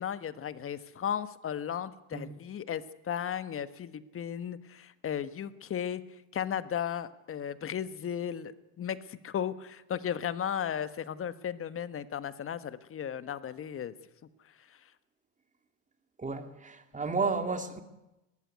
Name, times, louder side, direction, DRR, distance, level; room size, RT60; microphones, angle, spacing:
voice 1, 0.0-6.0 6.3-13.9, left 9 dB, 30° left, 14 dB, 1.3 m, -35 dB
voice 2, 16.2-17.8, right 4 dB, 20° right, 8 dB, 2.4 m, -32 dB
19.5 x 14.5 x 9.5 m, 0.97 s
supercardioid pair, 105°, 41 cm